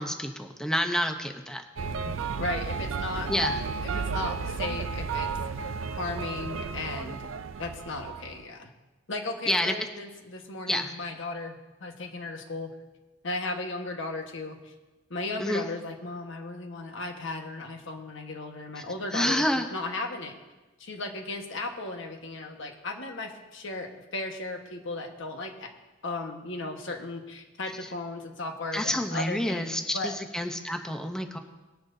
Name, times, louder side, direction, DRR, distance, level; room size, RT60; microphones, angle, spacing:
voice 1, 0.0-1.6 3.3-3.6 9.5-9.7 10.7-10.9 15.4-15.7 19.1-19.7 28.7-31.4, left 1 dB, 5° left, 5 dB, 0.7 m, -28 dB
sound 1, 1.8-8.4, right 5 dB, 75° right, 0.4 m, -33 dB
voice 2, 2.0-3.3 3.8-5.3 6.0-7.2 7.6-8.7 9.1-12.7 13.2-14.7 15.1-19.4 19.7-20.3 20.8-25.7 26.0-30.2, left 2 dB, 70° left, 4 dB, 1.4 m, -36 dB
20.0 x 10.5 x 2.7 m, 1.1 s
head